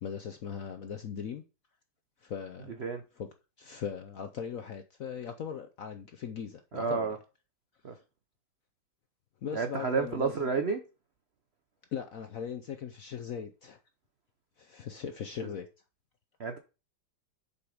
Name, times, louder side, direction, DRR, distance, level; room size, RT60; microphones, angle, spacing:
voice 1, 0.0-1.4 2.2-2.8 3.2-3.3 3.6-7.1 7.9-8.0 9.4-10.5 11.9-13.8 14.6-15.7, left 7 dB, 65° left, 0.8 m, -39 dB
voice 2, 6.7-7.2 7.8-8.0 9.5-10.8 16.4-16.6, right 5 dB, 75° right, 0.5 m, -30 dB
6.9 x 5.5 x 4.8 m
omnidirectional pair, 2.2 m